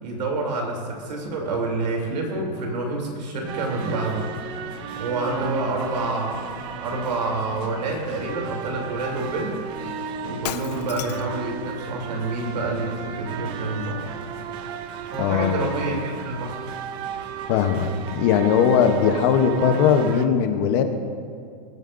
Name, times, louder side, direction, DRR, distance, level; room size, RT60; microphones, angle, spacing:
voice 1, 0.0-4.3 5.0-6.5 6.8-9.6 10.2-14.1 15.1-16.6, right 2 dB, 75° right, 1 dB, 3.0 m, -28 dB
sound 1, 3.5-20.3, right 7 dB, 25° right, 0.5 m, -34 dB
Shatter, 10.4-11.4, left 12 dB, 75° left, 0.6 m, -33 dB
voice 2, 15.2-15.7 17.5-17.9 18.1-20.8, left 7 dB, 35° left, 7 dB, 0.8 m, -19 dB
21.5 x 9.0 x 2.6 m, 2.2 s
supercardioid pair, 160°, 21 cm